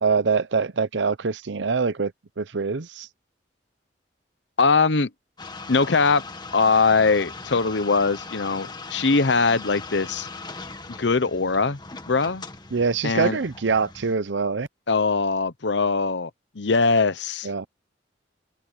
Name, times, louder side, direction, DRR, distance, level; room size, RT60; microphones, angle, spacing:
voice 1, 0.0-2.1 2.4-3.1 12.7-14.7 17.4-17.7, right 5 dB, 80° right, 0.7 m, -24 dB
voice 2, 4.6-5.1 5.7-6.2 6.5-10.3 11.0-11.8 12.1-12.4 13.0-13.4 14.9-16.3 16.6-17.5, left 4 dB, 75° left, 0.9 m, -21 dB
sound 1, 5.4-14.1, left 3 dB, 25° left, 1.8 m, -39 dB
open air
head